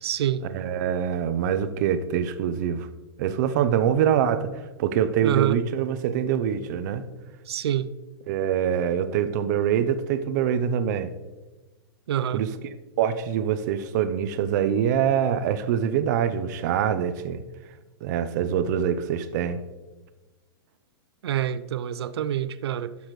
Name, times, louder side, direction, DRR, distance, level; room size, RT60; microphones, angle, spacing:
voice 1, 0.0-0.4 5.2-5.6 7.5-7.9 12.1-12.5 21.2-23.0, right 11 dB, 85° right, 0.5 m, -26 dB
voice 2, 0.5-2.9 3.2-4.5 4.8-7.0 8.3-11.1 12.3-12.5 13.0-17.4 18.0-19.6, right 9 dB, 45° right, 0.7 m, -24 dB
11.5 x 7.1 x 3.2 m
hypercardioid pair, 155°, 13 cm